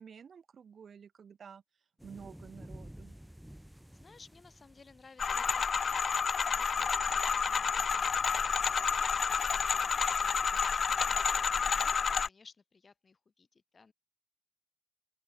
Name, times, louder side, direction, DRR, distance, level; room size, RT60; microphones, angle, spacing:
voice 1, 0.0-1.6 2.0-3.2, right 7 dB, 75° right, 5.2 m, -51 dB
sound 1, 2.0-5.7 7.6-7.8, equal, 5° right, 2.0 m, -52 dB
voice 2, 3.9-6.1 6.3-13.9, left 4 dB, 45° left, 6.8 m, -59 dB
sound 2, 5.2-12.3, left 6 dB, 65° left, 0.7 m, -30 dB
open air
wide cardioid pair, 115°, 0 cm